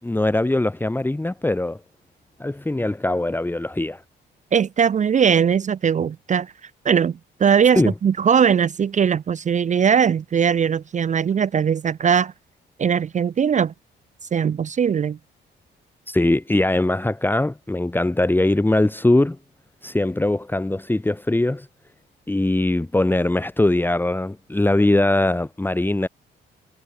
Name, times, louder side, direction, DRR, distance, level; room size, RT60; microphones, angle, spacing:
voice 1, 0.0-1.8 2.4-4.0 7.8-7.9 16.1-19.4 19.8-21.7 22.3-26.1, left 2 dB, 10° left, 1.7 m, -21 dB
voice 2, 4.5-6.5 6.8-12.3 12.8-13.7 14.3-15.2, right 7 dB, 40° right, 0.6 m, -20 dB
cardioid pair, 90°, 20 cm